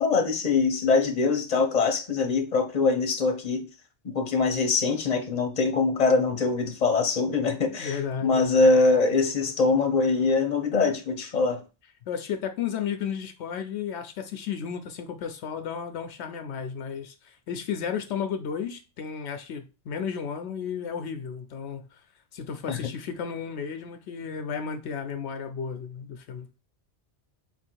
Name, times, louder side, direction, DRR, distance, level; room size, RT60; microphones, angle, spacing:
voice 1, 0.0-3.6 4.0-11.6 22.7-22.8, left 4 dB, 40° left, 0.9 m, -23 dB
voice 2, 7.8-8.7 12.1-22.0 22.3-26.5, left 7 dB, 80° left, 0.9 m, -33 dB
4.0 x 2.6 x 4.4 m
omnidirectional pair, 1.1 m